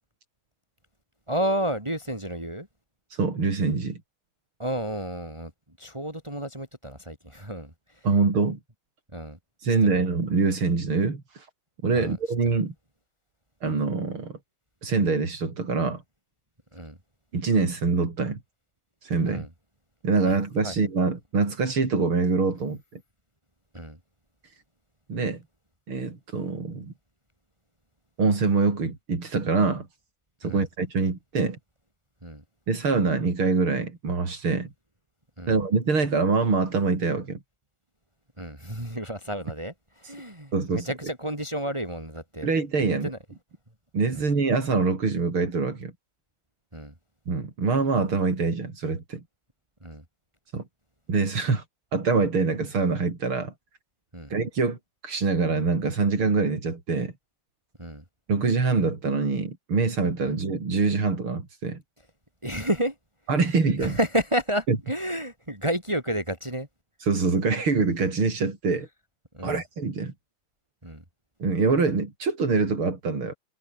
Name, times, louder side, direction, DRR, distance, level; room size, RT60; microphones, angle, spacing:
voice 1, 1.3-2.7 4.6-5.5 5.8-8.1 9.1-9.4 9.9-10.1 11.9-12.2 16.7-17.0 19.3-19.5 20.3-20.4 20.6-20.7 23.7-24.0 30.4-30.6 32.2-32.4 35.4-35.6 38.4-42.5 42.8-43.2 46.7-46.9 49.8-50.0 54.1-54.3 57.8-58.0 60.2-60.3 62.4-63.0 63.8-66.7 69.3-69.6 70.8-71.0, right 1 dB, 15° right, 5.2 m, -31 dB
voice 2, 3.1-4.0 8.0-8.6 9.6-11.5 11.8-12.7 13.6-14.4 14.8-16.0 17.3-18.4 19.0-19.5 20.0-22.8 25.1-25.4 25.9-26.9 28.2-29.9 30.4-31.6 32.7-34.7 35.5-37.4 40.5-40.9 42.4-43.1 43.9-45.9 47.3-49.2 50.5-50.6 51.1-51.6 51.9-53.5 54.3-54.8 55.0-57.1 58.3-61.8 63.3-64.0 64.7-64.8 67.0-68.9 69.4-70.1 71.4-73.4, right 4 dB, 90° right, 5.1 m, -24 dB
omnidirectional pair, 2.3 m